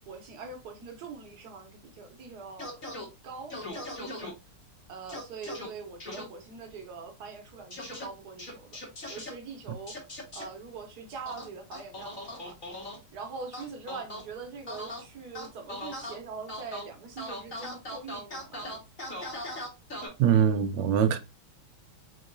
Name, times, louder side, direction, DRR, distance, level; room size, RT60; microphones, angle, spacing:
voice 1, 0.0-2.9 3.2-4.3 4.9-8.8 9.1-10.0 10.3-12.6 13.1-18.8, right 5 dB, 55° right, 1.3 m, -43 dB
sound 1, 2.6-3.1 3.5-4.3 5.1-5.7 6.0-6.2 7.7-8.0 8.4-9.3 9.9-10.4 11.2-13.0 13.5-14.2 14.7-15.0 15.3-16.1 16.5-16.8 17.2-20.1, left 1 dB, 30° left, 1.2 m, -39 dB
voice 2, 20.2-21.2, right 8 dB, 75° right, 1.1 m, -22 dB
3.8 x 3.7 x 2.5 m
omnidirectional pair, 2.4 m